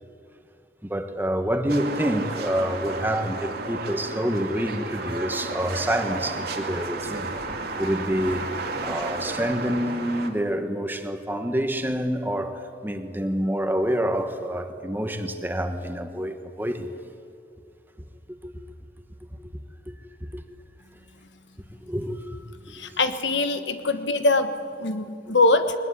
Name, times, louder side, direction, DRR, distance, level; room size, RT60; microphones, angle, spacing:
voice 1, 0.8-7.3 7.8-8.4 8.8-16.9 18.4-18.5 19.9-20.0 20.3-20.4 21.9-22.4, equal, 10° right, 6 dB, 1.4 m, -27 dB
sound 1, 1.7-10.3, right 3 dB, 55° right, 2.3 m, -33 dB
voice 2, 22.7-24.5 24.8-25.7, left 2 dB, 75° left, 9 dB, 1.3 m, -22 dB
22.0 x 19.5 x 9.8 m, 2.3 s
head